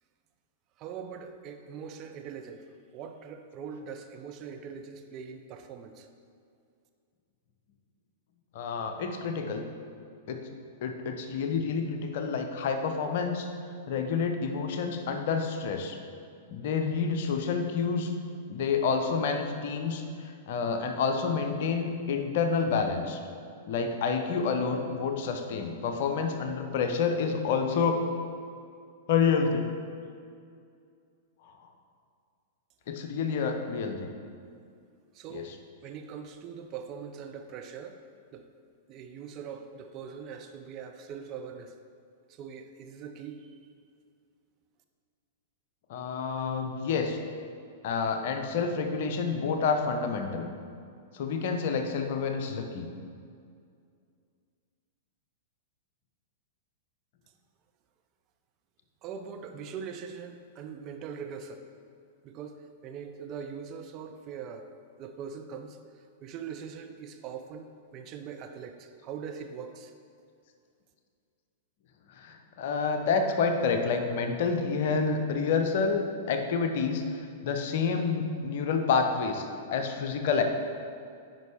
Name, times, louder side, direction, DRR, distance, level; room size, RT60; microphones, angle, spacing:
voice 1, 0.8-2.7 2.9-6.1 35.1-35.5 35.8-38.0 38.3-38.5 38.9-41.8 42.3-43.7 59.0-61.7 62.2-64.7 65.0-69.9, right 6 dB, 35° right, 6 dB, 0.5 m, -42 dB
voice 2, 8.5-9.6 10.3-10.4 10.8-13.5 13.9-16.0 16.5-18.1 18.5-23.2 23.7-28.0 29.1-29.7 31.4-31.5 32.9-34.1 35.3-35.4 45.9-47.2 47.8-50.5 51.1-52.9 72.2-80.4, left 5 dB, 50° left, 5 dB, 0.7 m, -28 dB
9.2 x 5.4 x 3.5 m, 2.3 s
figure-of-eight pair, 100°, 0 cm